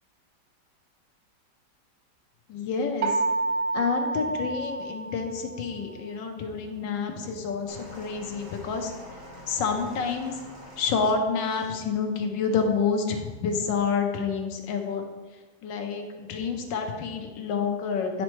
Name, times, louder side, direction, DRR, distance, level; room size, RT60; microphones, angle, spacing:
voice 1, 2.5-3.2 3.7-8.9 9.5-10.3 10.8-15.1 15.6-18.2, left 5 dB, 85° left, 4 dB, 1.4 m, -28 dB
sound 1, 3.0-5.8, right 3 dB, 75° right, 0.7 m, -29 dB
sound 2, 7.7-11.8 12.7-12.8, equal, 50° right, 1.5 m, -46 dB
9.2 x 4.2 x 3.1 m, 1.3 s
omnidirectional pair, 1.9 m